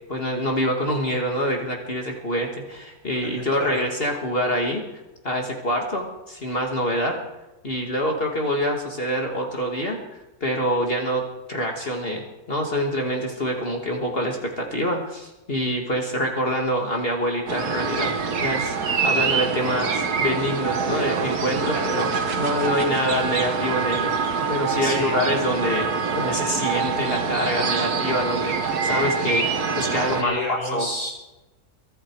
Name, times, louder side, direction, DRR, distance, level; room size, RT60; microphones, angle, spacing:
voice 1, 0.1-4.8 5.2-7.2 7.6-10.0 10.4-11.2 11.5-12.2 12.5-18.1 18.4-18.8 19.0-25.9 26.1-29.5 29.8-30.9, equal, 40° left, 1 dB, 2.3 m, -25 dB
sound 1, 17.5-30.2, right 5 dB, 90° right, 1.8 m, -25 dB
voice 2, 24.8-25.2 30.2-31.1, left 2 dB, 55° left, -4 dB, 6.3 m, -30 dB
23.5 x 11.5 x 4.8 m, 1.0 s
omnidirectional pair, 1.6 m